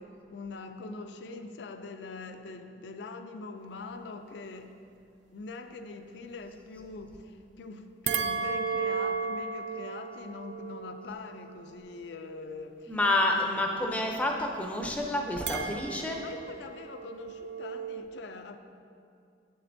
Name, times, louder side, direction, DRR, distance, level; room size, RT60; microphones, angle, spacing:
voice 1, 0.0-4.8 5.3-13.0 13.4-13.6 16.2-18.6, left 3 dB, 70° left, 0.4 m, -43 dB
sound 1, 8.1-12.5 15.5-18.0, right 5 dB, 75° right, 0.4 m, -35 dB
voice 2, 12.9-16.2, left 1 dB, 10° left, 0.5 m, -29 dB
7.7 x 7.5 x 2.6 m
head